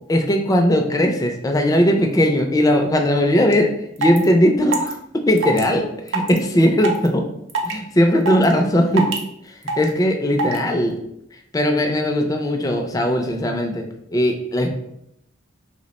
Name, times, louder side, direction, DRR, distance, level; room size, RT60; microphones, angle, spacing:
voice 1, 0.1-3.7 4.0-7.2 7.6-9.1 9.5-11.0 11.5-13.8 14.1-14.7, equal, 20° left, 3 dB, 0.4 m, -18 dB
sound 1, 3.5-3.6 4.0-4.2 4.7-4.9 5.4-5.6 6.1-6.4 6.8-7.1 7.5-7.7 8.3-8.5 9.0-9.2 9.7-9.9 10.4-10.6, right 3 dB, 85° right, 0.6 m, -22 dB
3.1 x 2.1 x 4.0 m, 0.78 s
head